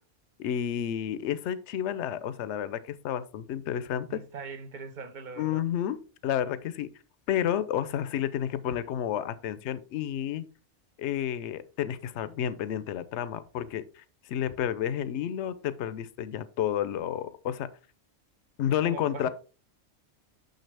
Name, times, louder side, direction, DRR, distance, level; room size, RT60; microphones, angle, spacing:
voice 1, 0.4-4.2 5.4-6.9 7.3-10.4 11.0-17.7 18.6-19.3, left 10 dB, 65° left, 0.9 m, -31 dB
voice 2, 4.1-5.6 18.7-19.3, right 5 dB, 45° right, 0.8 m, -41 dB
6.6 x 6.3 x 3.3 m
omnidirectional pair, 1.3 m